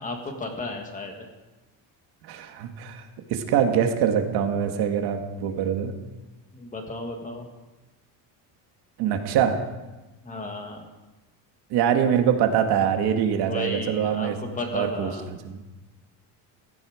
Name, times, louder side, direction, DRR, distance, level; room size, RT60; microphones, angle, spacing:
voice 1, 0.0-1.2 6.5-7.5 10.2-10.9 13.4-15.2, left 2 dB, 20° left, 3 dB, 1.8 m, -33 dB
voice 2, 2.2-3.0 3.3-5.9 9.0-9.6 11.7-14.4 14.7-15.6, right 8 dB, 60° right, 5 dB, 1.8 m, -24 dB
16.0 x 15.0 x 5.0 m, 1.1 s
cardioid pair, 180°, 43 cm